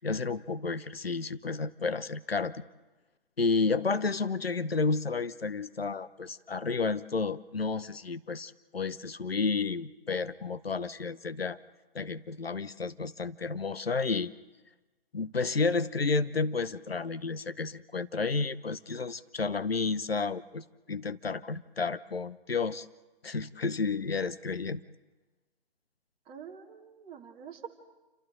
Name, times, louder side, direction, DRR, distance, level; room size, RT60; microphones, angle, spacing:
voice 1, 0.0-2.6 3.4-11.6 11.9-14.3 15.1-22.9 23.2-24.8, left 4 dB, 80° left, 13 dB, 0.9 m, -31 dB
voice 2, 26.3-27.7, right 7 dB, 15° right, 0 dB, 1.9 m, -46 dB
27.5 x 26.0 x 3.9 m, 1.2 s
figure-of-eight pair, 135°, 29 cm